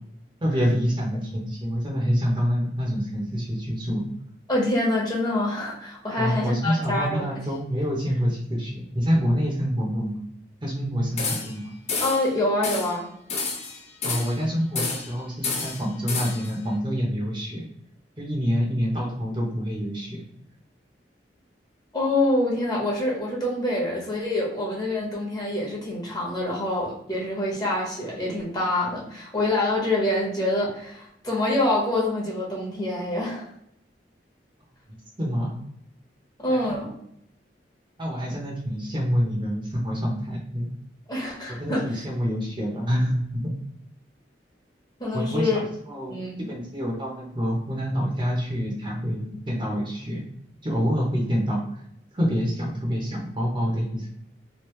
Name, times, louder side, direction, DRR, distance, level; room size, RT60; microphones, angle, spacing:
voice 1, 0.4-4.1 6.2-10.2 10.6-11.7 14.0-17.7 18.2-20.3 35.2-35.5 36.5-36.6 38.0-40.7 41.6-43.4 45.1-46.2 46.5-50.2 50.6-51.8 52.1-54.1, equal, 30° right, -2 dB, 0.8 m, -26 dB
voice 2, 4.5-7.3 12.0-13.1 21.9-33.5 36.4-36.9 41.1-41.8 45.0-45.6 46.1-46.5, left 1 dB, 25° left, -3 dB, 1.1 m, -26 dB
sound 1, 11.2-11.6 11.9-12.3 12.6-13.0 13.3-14.4 14.8-15.2 15.4-16.5, left 4 dB, 40° left, 0.7 m, -30 dB
3.0 x 2.6 x 3.1 m, 0.75 s
head